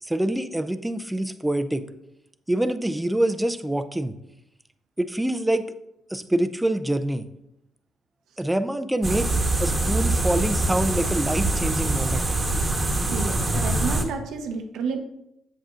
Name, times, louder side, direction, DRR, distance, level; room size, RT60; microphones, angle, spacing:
voice 1, 0.0-1.9 2.5-4.1 5.0-5.6 6.1-7.3 8.4-9.3 9.6-12.3, right 1 dB, 10° right, 10 dB, 0.5 m, -25 dB
sound 1, 9.0-14.0, right 2 dB, 25° right, 1.1 m, -24 dB
voice 2, 13.1-15.0, right 4 dB, 80° right, 6 dB, 0.8 m, -30 dB
8.0 x 7.4 x 2.5 m, 0.84 s
cardioid pair, 90°, 0 cm